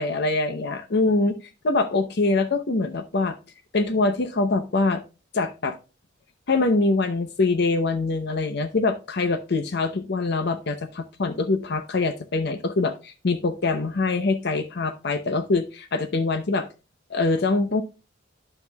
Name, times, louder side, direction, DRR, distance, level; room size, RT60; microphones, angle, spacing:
voice 1, 0.0-1.4 1.6-3.4 3.7-5.0 5.3-5.8 6.5-16.7 17.1-17.8, left 3 dB, 65° left, 9 dB, 0.7 m, -24 dB
12.0 x 5.6 x 2.3 m, 0.30 s
head